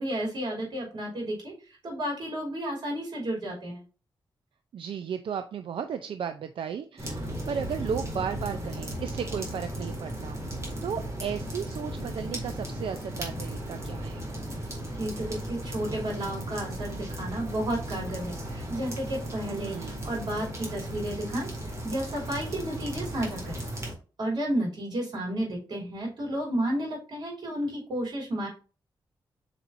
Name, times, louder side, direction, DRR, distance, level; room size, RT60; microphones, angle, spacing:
voice 1, 0.0-3.8 14.9-21.5 21.8-23.6 24.2-28.5, right 1 dB, 65° right, -3 dB, 2.9 m, -32 dB
voice 2, 4.7-10.5 10.8-14.2 19.5-20.2, right 7 dB, 90° right, 8 dB, 0.5 m, -35 dB
sound 1, 7.0-23.9, right 1 dB, 35° right, 2.1 m, -36 dB
8.2 x 4.4 x 2.6 m, 0.35 s
wide cardioid pair, 180°, 9 cm